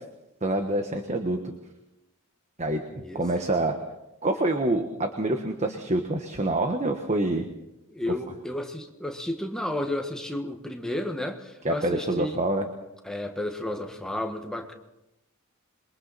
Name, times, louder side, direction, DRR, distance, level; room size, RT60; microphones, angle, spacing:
voice 1, 0.4-1.4 2.6-2.8 3.1-3.7 4.2-7.5 11.6-12.6, right 1 dB, 30° right, 5 dB, 1.3 m, -26 dB
voice 2, 2.9-3.2 7.9-12.4 13.0-14.7, left 1 dB, 5° left, 3 dB, 1.6 m, -32 dB
27.5 x 23.0 x 4.2 m, 0.93 s
head